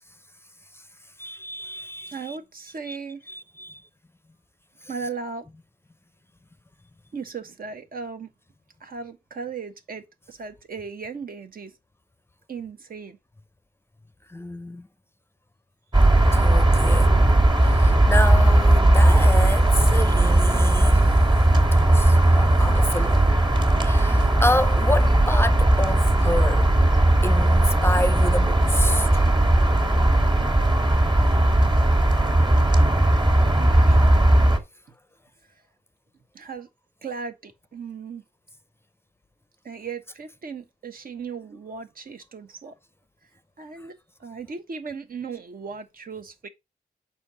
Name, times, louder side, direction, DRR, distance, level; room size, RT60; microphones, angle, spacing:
voice 1, 1.2-2.4 2.8-3.0 3.3-3.8 14.3-14.9 16.3-17.1 17.6-21.1 21.9-23.2 23.8-26.7 27.2-29.1, left 1 dB, 15° left, 0.5 m, -29 dB
voice 2, 2.1-3.2 4.9-5.5 7.1-8.3 8.8-11.7 12.5-13.2 33.6-34.3 36.3-36.7 37.0-38.2 39.6-42.7 43.6-46.5, right 5 dB, 70° right, 1.1 m, -37 dB
sound 1, 15.9-34.6, right 1 dB, 30° right, 1.7 m, -18 dB
5.8 x 4.4 x 5.4 m
wide cardioid pair, 80°, 16 cm